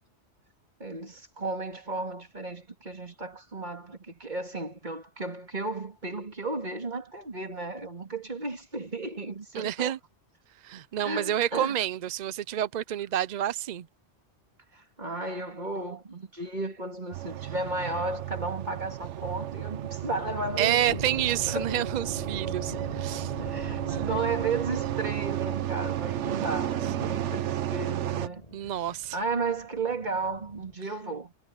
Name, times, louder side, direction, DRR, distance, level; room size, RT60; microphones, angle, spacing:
voice 1, 0.8-9.9 11.0-11.8 14.7-21.0 21.5-21.8 23.4-28.4 29.1-31.4, right 3 dB, 40° right, 3.0 m, -34 dB
voice 2, 9.5-10.0 10.6-13.9 20.6-23.3 23.9-24.1 26.4-26.8 28.5-29.2, right 11 dB, 60° right, 0.4 m, -29 dB
sound 1, 17.1-28.3, right 12 dB, 75° right, 1.0 m, -33 dB
sound 2, 20.8-30.7, left 1 dB, 35° left, 7.9 m, -43 dB
omnidirectional pair, 1.2 m